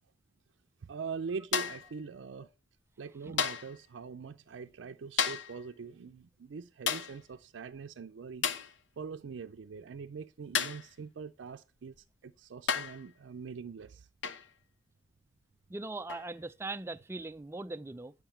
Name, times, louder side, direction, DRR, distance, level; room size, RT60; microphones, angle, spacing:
voice 1, 0.9-2.5 3.0-8.5 9.0-11.9 12.2-14.1, right 5 dB, 85° right, 0.4 m, -43 dB
sound 1, 1.5-1.9 3.4-3.8 5.2-5.6 6.9-7.2 8.4-8.7 10.5-10.9 12.0-12.1 12.7-13.0 14.2-14.5 16.1-16.3, left 7 dB, 85° left, 0.8 m, -32 dB
voice 2, 15.7-18.1, right 2 dB, 15° right, 0.4 m, -40 dB
9.2 x 5.7 x 4.3 m
head